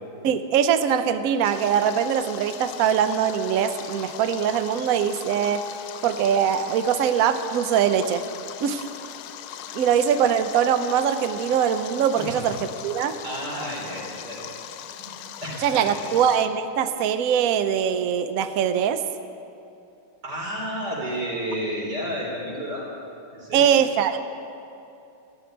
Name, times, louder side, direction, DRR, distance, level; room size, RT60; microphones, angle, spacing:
voice 1, 0.2-5.6 6.0-8.2 8.6-8.8 9.7-12.6 12.8-13.2 15.6-19.0 23.5-24.2, right 8 dB, 85° right, 10 dB, 0.7 m, -22 dB
Stream, 1.4-16.5, left 10 dB, 90° left, 1.5 m, -39 dB
voice 2, 12.2-12.5 13.2-14.5 15.0-15.1 15.4-16.1 20.2-23.0 23.3-23.7, equal, 50° right, -4 dB, 4.5 m, -31 dB
14.5 x 7.8 x 10.0 m, 2.7 s
omnidirectional pair, 2.3 m